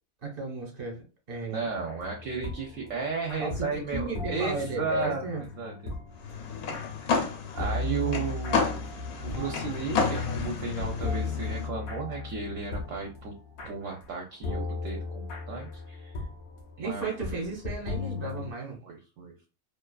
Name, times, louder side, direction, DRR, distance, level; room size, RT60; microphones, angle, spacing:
voice 1, 0.2-1.6 3.4-5.4 7.8-8.2 16.8-18.8, right 3 dB, 45° right, 1 dB, 1.1 m, -35 dB
voice 2, 1.5-5.2 5.6-5.9 6.9-7.2 7.5-8.8 9.2-13.3 13.6-16.2 16.8-17.1 18.8-19.5, right 4 dB, 70° right, 0 dB, 0.9 m, -34 dB
sound 1, 1.7-14.1 14.4-18.5, left 3 dB, 55° left, 0.8 m, -37 dB
sound 2, 6.2-11.7, left 5 dB, 90° left, 1.1 m, -31 dB
2.6 x 2.3 x 2.2 m, 0.33 s
omnidirectional pair, 1.5 m